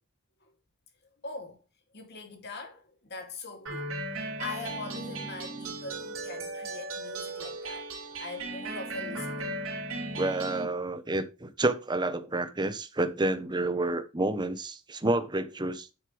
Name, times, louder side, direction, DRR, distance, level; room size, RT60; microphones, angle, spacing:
voice 1, 1.2-1.6 1.9-9.5, left 3 dB, 55° left, 2.9 m, -42 dB
sound 1, 3.7-10.7, right 2 dB, 85° right, 3.3 m, -36 dB
voice 2, 10.2-15.9, right 2 dB, 20° right, 1.1 m, -29 dB
10.0 x 7.5 x 3.4 m
head